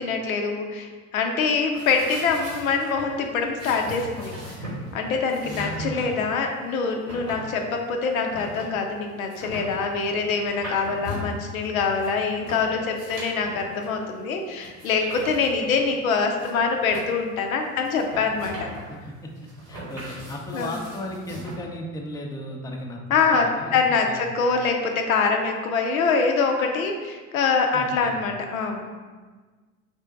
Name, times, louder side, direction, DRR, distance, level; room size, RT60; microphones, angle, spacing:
voice 1, 0.0-4.3 4.9-18.7 20.5-20.8 23.1-28.9, left 4 dB, 85° left, 3 dB, 0.5 m, -24 dB
sound 1, 1.7-21.6, equal, 85° right, 1.3 m, -39 dB
voice 2, 5.4-6.1 18.9-19.3 19.7-24.2 27.7-28.2, left 1 dB, 10° left, 1 dB, 0.4 m, -35 dB
3.6 x 2.6 x 3.4 m, 1.4 s
hypercardioid pair, 60°, 41 cm